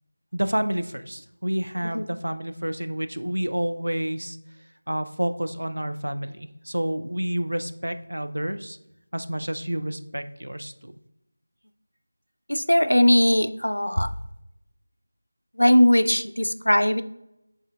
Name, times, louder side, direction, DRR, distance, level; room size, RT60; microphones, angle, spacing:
voice 1, 0.3-4.4 4.9-8.8 9.1-10.9, right 1 dB, 80° right, 9 dB, 0.4 m, -29 dB
voice 2, 12.5-14.1 15.6-17.0, left 1 dB, 90° left, 11 dB, 0.4 m, -19 dB
6.2 x 3.8 x 2.2 m, 0.86 s
figure-of-eight pair, 170°, 0 cm